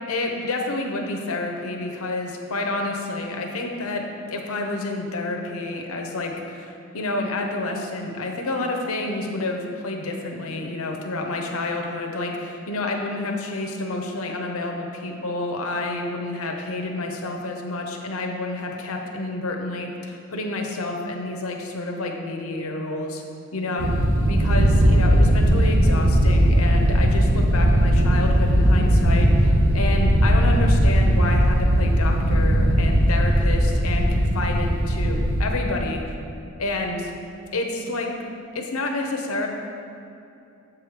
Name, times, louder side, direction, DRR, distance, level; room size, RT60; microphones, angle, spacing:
voice 1, 0.1-4.0 4.3-23.2 23.5-23.9 24.2-36.0 36.6-37.1 37.5-38.1 38.5-39.5, left 2 dB, 85° left, 2 dB, 0.8 m, -29 dB
sound 1, 23.8-35.5, equal, 80° right, 0.7 m, -18 dB
7.5 x 4.8 x 4.9 m, 2.7 s
head